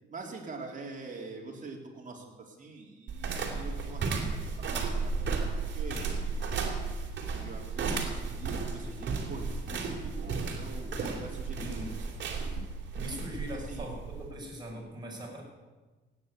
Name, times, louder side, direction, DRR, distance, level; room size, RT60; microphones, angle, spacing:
voice 1, 0.1-6.1 7.3-11.7 11.9-12.3 13.5-13.9, right 3 dB, 40° right, 0 dB, 3.8 m, -45 dB
sound 1, 3.1-14.3, right 4 dB, 65° right, 3.0 m, -34 dB
voice 2, 11.6-12.0 12.9-14.0 14.3-15.4, equal, 20° right, -3 dB, 6.3 m, -40 dB
16.5 x 9.8 x 8.4 m, 1.3 s
cardioid pair, 90°, 20 cm